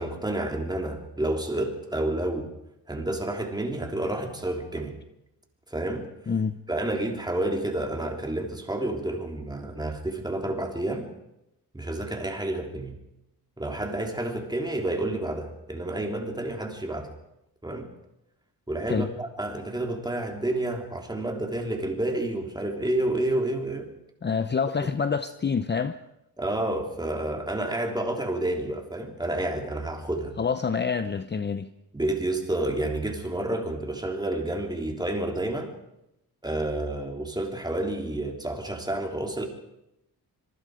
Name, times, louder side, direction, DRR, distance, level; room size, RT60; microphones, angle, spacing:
voice 1, 0.0-2.5 2.9-4.9 5.7-6.1 6.7-11.1 11.7-13.0 13.6-17.1 17.6-17.9 18.7-23.9 24.8-24.9 26.4-30.4 31.9-35.7 36.4-39.5, right 1 dB, 10° right, 2 dB, 3.6 m, -29 dB
voice 2, 6.3-6.6 18.9-19.1 24.2-26.0 30.4-31.7, left 5 dB, 30° left, 11 dB, 0.8 m, -27 dB
25.5 x 23.0 x 5.1 m, 0.86 s
wide cardioid pair, 125°, 38 cm